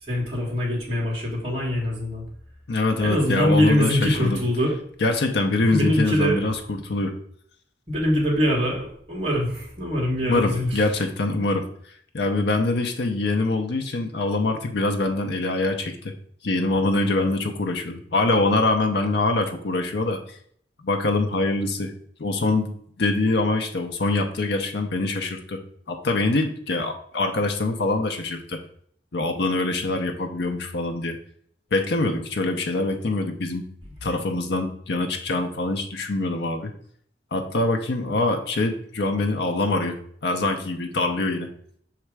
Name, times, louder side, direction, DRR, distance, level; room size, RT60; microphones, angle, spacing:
voice 1, 0.0-2.2 3.0-4.8 5.7-6.4 7.9-10.8, equal, 30° right, -7 dB, 1.6 m, -23 dB
voice 2, 2.7-4.4 5.0-7.2 10.3-11.7 12.1-16.1 16.4-20.2 20.8-21.9 22.2-22.7 23.0-25.6 25.9-28.6 29.1-31.2 31.7-33.6 34.0-36.7 37.3-41.5, left 2 dB, 70° left, 4 dB, 0.7 m, -24 dB
6.1 x 3.3 x 4.7 m, 0.63 s
head